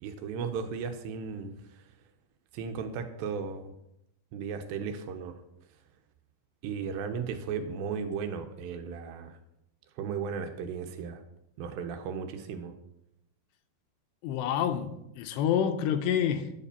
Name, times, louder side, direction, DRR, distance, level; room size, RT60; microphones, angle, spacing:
voice 1, 0.0-1.8 2.5-3.7 4.3-5.4 6.6-9.4 10.0-11.2 11.6-12.7, right 6 dB, 80° right, 7 dB, 2.9 m, -35 dB
voice 2, 14.2-16.5, left 9 dB, 90° left, 8 dB, 3.0 m, -28 dB
11.0 x 4.9 x 6.8 m, 0.84 s
omnidirectional pair, 5.0 m